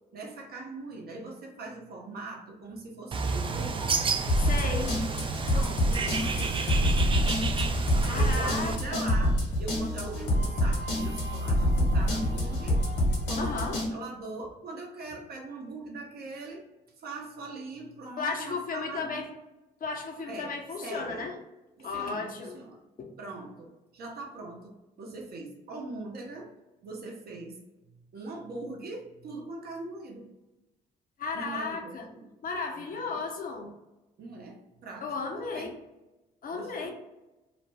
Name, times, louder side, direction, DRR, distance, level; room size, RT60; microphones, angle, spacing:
voice 1, 0.1-4.0 5.5-7.0 8.1-12.8 13.3-16.6 17.0-19.3 20.3-20.5 20.8-21.3 21.8-22.8 23.2-26.5 26.8-27.6 27.8-30.3 31.3-32.3 32.8-33.3 34.2-35.7 36.5-36.9, right 3 dB, 50° right, 0 dB, 0.8 m, -41 dB
Bird, 3.1-8.8, right 4 dB, 25° right, 0.4 m, -30 dB
sound 1, 4.3-13.9, left 1 dB, 65° left, 1.1 m, -27 dB
voice 2, 4.4-5.0 8.0-9.1 13.4-13.8 18.2-19.3 19.8-21.3 21.8-22.6 23.0-23.1 31.2-32.1 32.4-33.7 35.0-35.7 36.4-36.9, left 4 dB, 45° left, 2 dB, 0.7 m, -34 dB
2.4 x 2.1 x 3.2 m, 1.0 s
hypercardioid pair, 45°, 21 cm